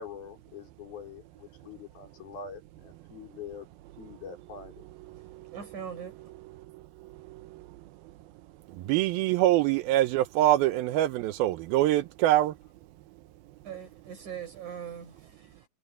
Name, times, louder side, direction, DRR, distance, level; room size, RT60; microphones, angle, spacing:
voice 1, 0.0-3.7 4.0-4.8, left 6 dB, 80° left, 6.9 m, -44 dB
voice 2, 5.5-6.2 13.6-15.5, right 8 dB, 55° right, 7.2 m, -41 dB
voice 3, 8.9-12.5, right 14 dB, 85° right, 2.6 m, -24 dB
omnidirectional pair, 4.3 m